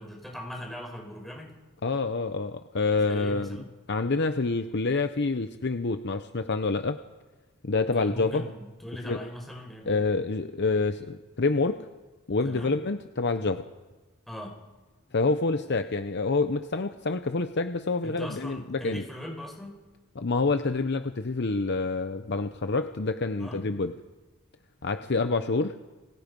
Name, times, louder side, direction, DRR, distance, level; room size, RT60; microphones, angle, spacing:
voice 1, 0.0-1.5 3.0-3.6 7.9-10.0 12.4-12.7 14.3-14.5 18.0-19.8 23.4-23.6, equal, ahead, 0 dB, 5.1 m, -40 dB
voice 2, 1.8-3.6 3.9-7.0 7.6-8.5 9.0-9.2 9.9-11.8 12.3-13.6 15.1-19.0 20.2-23.9 24.8-25.8, left 3 dB, 50° left, 9 dB, 0.8 m, -27 dB
29.5 x 24.5 x 5.4 m, 1.3 s
head